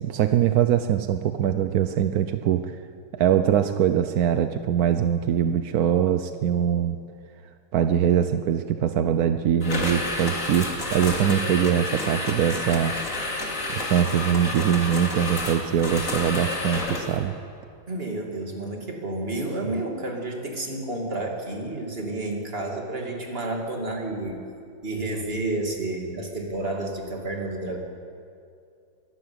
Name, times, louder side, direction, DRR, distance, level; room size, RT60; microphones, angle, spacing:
voice 1, 0.0-2.7 3.1-7.0 7.7-12.9 13.7-17.3, right 9 dB, 70° right, 9 dB, 0.9 m, -22 dB
sound 1, 9.6-17.2, left 2 dB, 35° left, 2.9 m, -30 dB
voice 2, 17.9-24.4 24.8-27.8, right 2 dB, 25° right, 1 dB, 2.6 m, -30 dB
23.0 x 12.0 x 9.6 m, 2.4 s
omnidirectional pair, 2.4 m